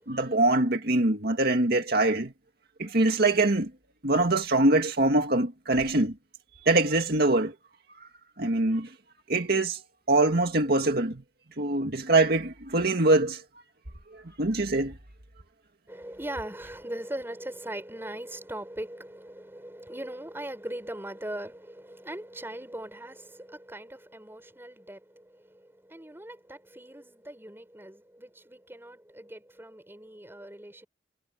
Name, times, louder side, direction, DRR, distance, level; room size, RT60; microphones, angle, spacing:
voice 1, 0.1-2.3 2.8-3.7 4.0-6.1 6.6-7.5 8.4-8.9 9.3-9.8 10.1-11.2 11.6-13.4 14.1-14.9, right 2 dB, 60° right, 2.1 m, -23 dB
voice 2, 15.9-30.9, right 1 dB, 15° right, 5.4 m, -40 dB
head